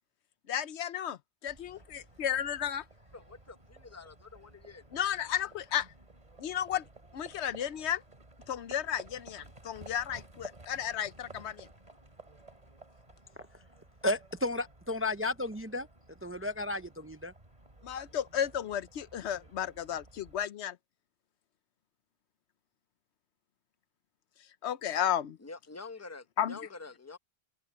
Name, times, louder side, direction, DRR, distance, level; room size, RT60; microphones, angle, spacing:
voice 1, 0.5-2.8 4.9-5.9 6.4-6.8 7.1-8.0 8.5-11.7 17.8-20.8 24.6-25.4 26.4-26.6, left 9 dB, 85° left, 1.0 m, -33 dB
Livestock farm animals working animals, 1.5-20.5, right 2 dB, 35° right, 2.8 m, -55 dB
voice 2, 3.1-4.9 25.4-27.2, left 4 dB, 15° left, 0.8 m, -47 dB
voice 3, 14.0-15.9 16.2-17.3, left 2 dB, 15° right, 0.5 m, -33 dB
omnidirectional pair, 1.1 m